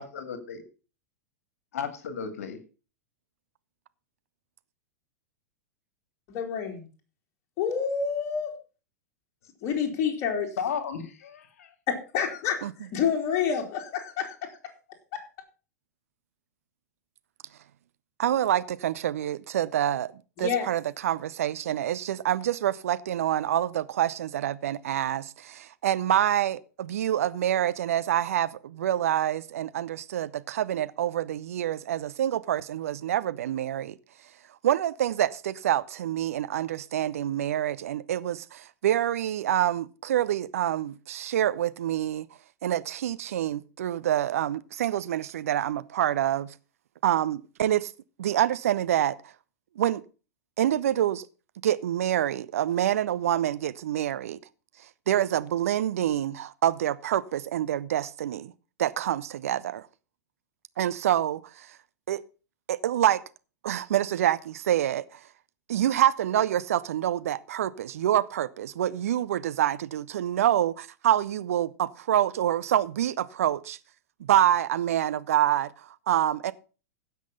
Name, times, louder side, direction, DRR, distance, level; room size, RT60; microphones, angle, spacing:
voice 1, 0.0-0.6 1.7-2.6 10.6-11.7, left 7 dB, 60° left, 2.3 m, -34 dB
voice 2, 6.3-6.9 7.6-8.5 9.6-10.5 11.9-14.6 20.4-20.7, left 7 dB, 35° left, 3.1 m, -28 dB
voice 3, 18.2-20.1 20.4-34.0 34.6-42.3 42.6-46.5 47.0-47.9 48.2-49.2 49.8-50.0 50.6-51.3 51.6-54.4 55.1-58.5 58.8-59.9 60.8-61.7 62.1-62.2 62.7-63.2 63.6-65.2 65.7-73.8 74.2-76.5, right 11 dB, 60° right, 0.7 m, -26 dB
16.0 x 6.1 x 5.6 m
figure-of-eight pair, 95°, 9 cm